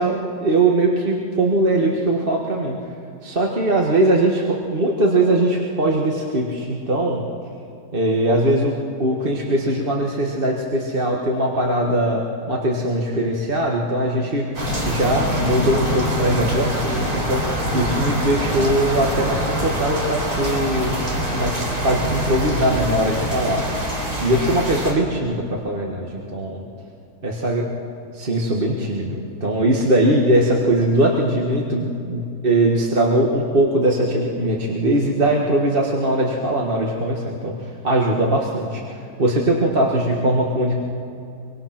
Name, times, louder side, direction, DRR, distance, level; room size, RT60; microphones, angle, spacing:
voice 1, 0.0-2.8 3.2-7.2 7.9-8.7 9.0-12.2 12.5-14.4 14.8-20.9 21.3-23.6 24.2-26.7 27.2-27.6 28.2-37.6 37.8-40.7, right 1 dB, 35° right, -1 dB, 1.8 m, -20 dB
sound 1, 14.5-24.9, equal, 70° right, 4.5 m, -24 dB
25.0 x 23.0 x 6.0 m, 2.6 s
omnidirectional pair, 1.7 m